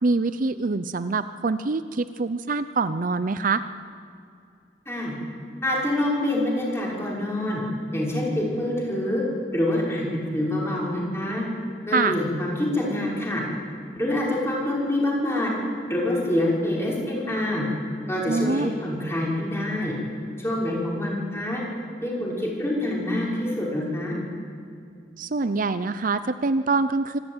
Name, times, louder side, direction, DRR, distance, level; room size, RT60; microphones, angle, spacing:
voice 1, 0.0-3.6 11.9-12.1 18.3-18.7 25.2-27.2, right 3 dB, 50° right, 12 dB, 0.6 m, -25 dB
voice 2, 5.6-7.6 7.9-9.2 9.5-11.4 11.9-13.4 14.0-15.5 15.9-17.7 18.1-19.9 20.4-21.6 22.0-24.2, left 1 dB, 15° left, -4 dB, 6.0 m, -26 dB
25.5 x 13.0 x 9.2 m, 2.5 s
head